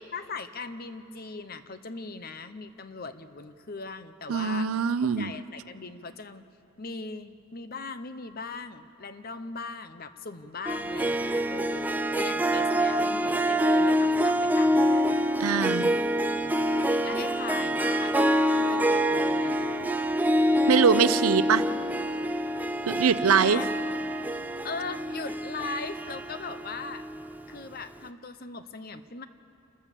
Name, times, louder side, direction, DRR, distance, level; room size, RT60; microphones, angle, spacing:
voice 1, 0.1-4.7 5.2-6.5 6.8-15.2 16.4-18.1 18.6-19.8 23.3-23.7 24.6-27.1 27.5-29.3, left 4 dB, 45° left, 11 dB, 0.8 m, -39 dB
voice 2, 4.3-5.3 15.4-16.0 20.7-21.6 22.9-23.6, right 6 dB, 85° right, 15 dB, 0.6 m, -23 dB
Harp, 10.7-27.4, equal, 10° right, 0.4 m, -26 dB
28.5 x 14.5 x 6.9 m, 2.7 s
head